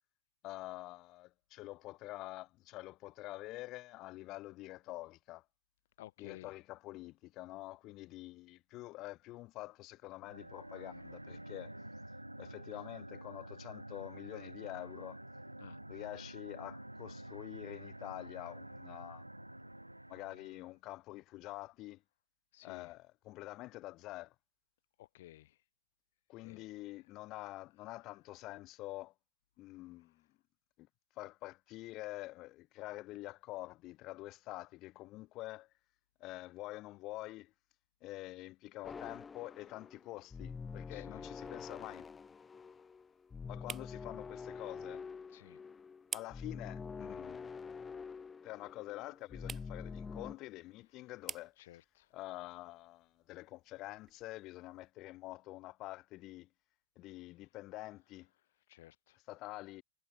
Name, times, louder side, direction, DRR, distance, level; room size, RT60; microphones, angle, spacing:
voice 1, 0.4-5.4 6.2-11.8 12.4-15.2 15.9-19.2 20.1-22.0 22.6-24.3 26.3-29.1 29.6-30.2 30.8-30.9 31.2-35.7 36.2-37.5 38.0-42.1 43.5-45.0 46.1-47.5 48.4-51.5 52.1-56.5 57.0-58.3 59.3-59.8, left 18 dB, 40° left, 2.1 m, -47 dB
voice 2, 6.0-6.5 15.6-15.8 22.5-22.9 25.0-25.5 26.4-26.7 40.9-41.3 45.3-45.6 51.6-52.1 58.7-59.2, left 15 dB, 55° left, 1.5 m, -55 dB
sound 1, 10.2-20.7, right 1 dB, 85° right, 0.4 m, -49 dB
sound 2, 38.8-50.4, left 5 dB, 15° left, 1.5 m, -46 dB
sound 3, 40.1-54.9, right 8 dB, 20° right, 1.9 m, -54 dB
figure-of-eight pair, 90°, 0 cm